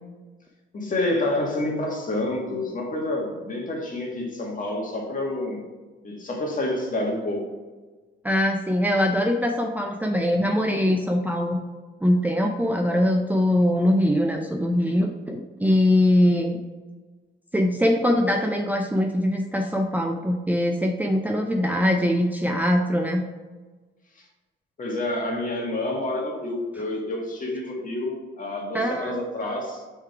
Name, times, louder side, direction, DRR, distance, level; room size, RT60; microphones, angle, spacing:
voice 1, 0.7-5.6 6.0-7.5 24.8-29.9, left 1 dB, 40° left, 0 dB, 1.6 m, -28 dB
voice 2, 8.2-11.6 12.0-16.6 17.5-23.2 28.7-29.2, left 1 dB, 10° right, 2 dB, 0.5 m, -22 dB
6.2 x 3.8 x 4.7 m, 1.3 s
cardioid pair, 90°, 20 cm